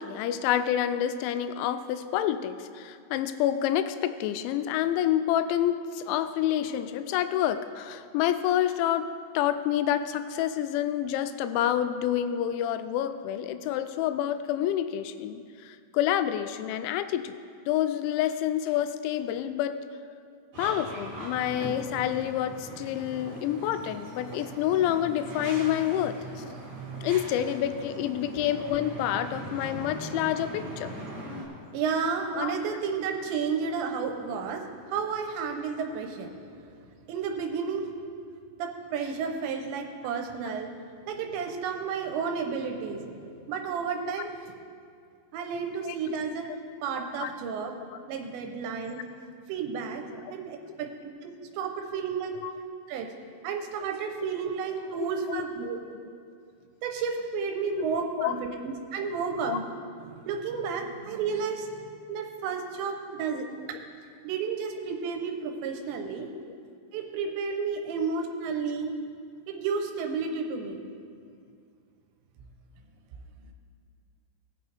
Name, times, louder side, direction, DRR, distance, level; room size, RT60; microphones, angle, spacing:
voice 1, 0.0-17.4 17.7-19.8 20.6-26.4 27.0-30.9 32.3-32.6 40.4-40.5 45.8-46.2 47.2-47.3 50.3-50.4 52.4-52.5 55.0-55.4 57.8-57.9 58.2-58.3 59.5-59.6 68.0-68.1, left 11 dB, 85° left, 11 dB, 2.8 m, -28 dB
sound 1, 20.5-31.5, right 2 dB, 55° right, 1.2 m, -40 dB
voice 2, 31.7-36.4 37.1-37.9 38.6-40.7 41.1-44.4 45.3-46.5 46.8-47.7 48.1-49.0 49.5-50.9 51.2-52.3 52.9-53.1 53.4-55.8 56.8-59.6 60.1-63.8 64.2-66.3 66.9-68.9 69.5-70.8, right 5 dB, 80° right, 4 dB, 2.8 m, -32 dB
19.0 x 6.9 x 3.3 m, 2.3 s
omnidirectional pair, 5.4 m